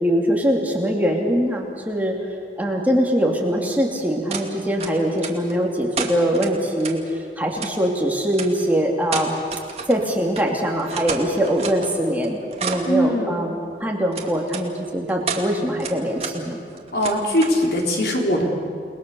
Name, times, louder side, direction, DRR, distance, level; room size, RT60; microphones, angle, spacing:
voice 1, 0.0-2.2 2.6-7.0 7.4-9.4 9.9-16.6, equal, 10° right, -1 dB, 2.6 m, -22 dB
sound 1, 4.3-4.5 4.8-5.5 5.9-7.0 7.6-7.7 8.3-8.5 9.1-10.1 10.3-10.4 10.7-11.9 12.2-12.9 14.1-14.6 15.1-15.5 15.8-16.3 16.6-17.6, right 5 dB, 35° right, 2.3 m, -30 dB
voice 2, 12.9-13.5 16.9-18.5, equal, 65° left, 0 dB, 4.0 m, -21 dB
30.0 x 20.5 x 6.9 m, 2.3 s
head